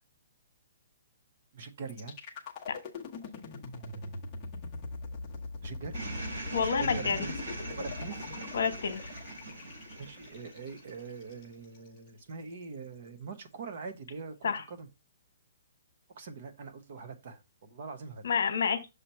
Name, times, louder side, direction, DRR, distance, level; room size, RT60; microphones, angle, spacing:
voice 1, 1.5-2.2 5.6-6.0 6.6-7.4 7.8-8.3 10.0-14.9 16.1-18.2, right 4 dB, 40° right, 0.9 m, -43 dB
sound 1, 1.9-11.9, left 3 dB, 20° left, 0.9 m, -42 dB
sound 2, 5.9-11.4, right 2 dB, 70° right, 4.0 m, -42 dB
voice 2, 6.5-7.3 8.5-9.0 14.4-14.6 18.2-18.9, left 6 dB, 60° left, 1.2 m, -29 dB
6.6 x 3.0 x 5.5 m
hypercardioid pair, 180°, 0 cm